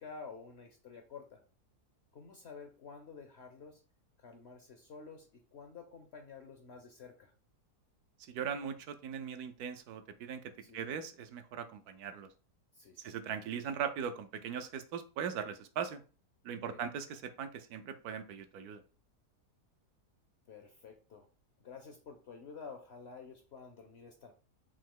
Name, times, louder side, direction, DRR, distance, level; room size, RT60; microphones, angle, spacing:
voice 1, 0.0-1.4 2.1-3.8 4.2-7.3 10.6-11.0 12.7-13.2 16.7-16.8 20.5-21.3 21.6-24.3, left 5 dB, 60° left, 5 dB, 0.7 m, -50 dB
voice 2, 8.3-10.4 10.7-12.3 13.0-16.0 16.4-18.8, right 7 dB, 75° right, 9 dB, 1.1 m, -39 dB
5.3 x 2.8 x 3.7 m, 0.37 s
omnidirectional pair, 1.7 m